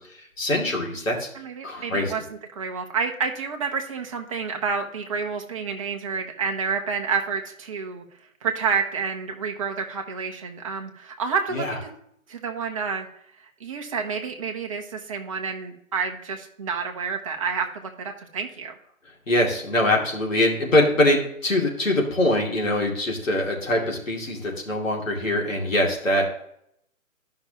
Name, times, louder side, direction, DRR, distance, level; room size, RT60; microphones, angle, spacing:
voice 1, 0.4-1.3 1.6-2.1 11.5-11.7 19.3-26.3, left 1 dB, 70° left, -1 dB, 2.6 m, -23 dB
voice 2, 1.3-8.0 8.4-11.9 12.3-13.1 13.4-18.8, right 5 dB, 25° right, 3 dB, 0.9 m, -29 dB
12.0 x 5.8 x 2.9 m, 0.72 s
figure-of-eight pair, 145°, 41 cm